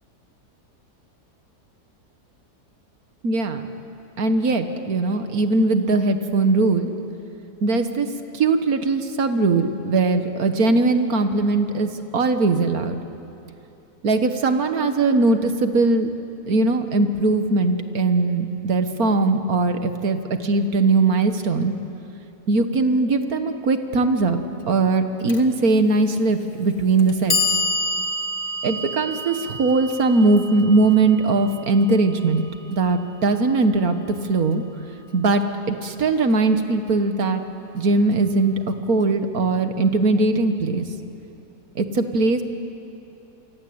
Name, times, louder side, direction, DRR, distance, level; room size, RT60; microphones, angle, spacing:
voice 1, 3.2-3.7 4.2-6.9 7.6-8.1 8.3-13.0 14.0-16.1 16.5-21.8 22.5-24.4 24.7-27.6 28.6-32.4 32.7-34.0 34.3-34.6 35.1-37.4 37.7-40.9 41.8-42.4, right 3 dB, 60° right, 8 dB, 1.9 m, -20 dB
Clock, 25.3-25.4 26.4-26.5 27.0-33.0, left 2 dB, 35° left, 1.7 m, -28 dB
27.0 x 24.0 x 8.7 m, 2.8 s
omnidirectional pair, 1.7 m